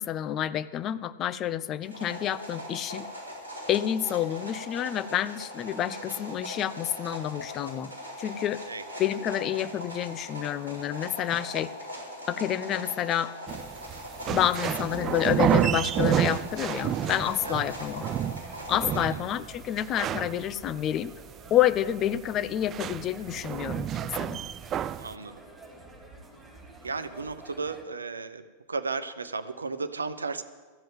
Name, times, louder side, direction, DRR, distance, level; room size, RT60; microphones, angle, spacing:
voice 1, 0.0-3.1 3.7-7.9 8.2-8.6 9.0-11.7 12.3-13.3 14.3-18.0 18.7-21.1 21.5-24.4, left 11 dB, 30° left, 14 dB, 0.5 m, -29 dB
sound 1, 1.8-19.0, equal, 85° left, 4.6 m, -40 dB
sound 2, 13.5-25.1, right 10 dB, 30° right, 0.4 m, -30 dB
sound 3, 17.6-27.8, right 2 dB, 15° right, 4.0 m, -50 dB
voice 2, 25.0-25.4 26.8-28.4 28.7-30.4, right 4 dB, 75° right, 12 dB, 0.8 m, -34 dB
13.5 x 7.7 x 9.1 m, 1.4 s
figure-of-eight pair, 90°, 0 cm